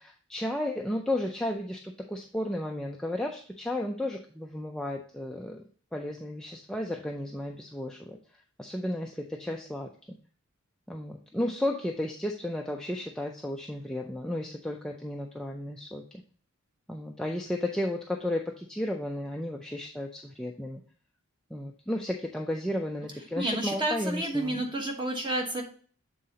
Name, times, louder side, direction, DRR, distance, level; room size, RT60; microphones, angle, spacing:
voice 1, 0.0-5.6 5.9-8.2 8.6-10.2 10.9-16.0 16.9-20.8 21.5-24.6, left 1 dB, 5° left, 0 dB, 0.4 m, -33 dB
voice 2, 23.4-25.6, right 1 dB, 20° right, 1 dB, 1.2 m, -30 dB
7.3 x 3.8 x 4.0 m, 0.43 s
head